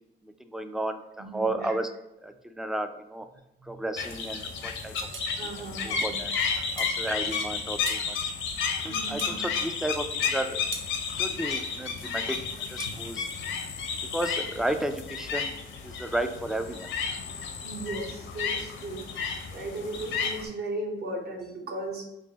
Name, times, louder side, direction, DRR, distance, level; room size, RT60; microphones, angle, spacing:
voice 1, 0.2-1.9 2.2-3.3 3.6-5.0 5.8-6.3 6.8-8.2 8.8-10.6 11.1-12.4 12.7-13.3 14.1-15.5 15.8-16.9, right 1 dB, ahead, 8 dB, 0.3 m, -33 dB
voice 2, 1.2-1.7 3.6-3.8 5.4-6.2 8.9-9.4 17.6-19.1 19.5-22.1, right 2 dB, 55° right, 1 dB, 1.0 m, -37 dB
sound 1, 4.0-20.5, left 5 dB, 75° left, 0.6 m, -32 dB
sound 2, 5.1-5.4 6.8-7.0 7.9-8.1 9.2-9.4 10.7-10.9 12.8-13.0, right 6 dB, 75° right, 0.6 m, -39 dB
4.6 x 2.6 x 2.9 m, 0.95 s
cardioid pair, 90°, 20 cm